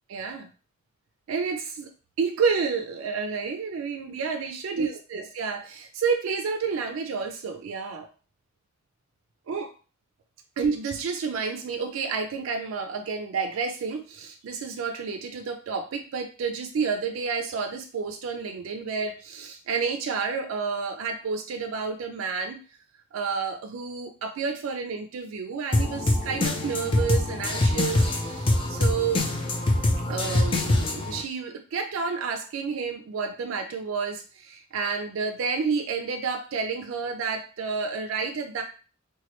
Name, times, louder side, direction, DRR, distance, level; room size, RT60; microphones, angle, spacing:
voice 1, 0.1-0.5 1.3-1.9 2.2-8.1 9.5-9.7 10.6-22.6 23.1-29.3 30.1-38.6, right 5 dB, 80° right, 5 dB, 0.4 m, -30 dB
sound 1, 25.7-31.2, left 2 dB, 25° left, 0.4 m, -24 dB
3.0 x 2.2 x 2.9 m, 0.36 s
head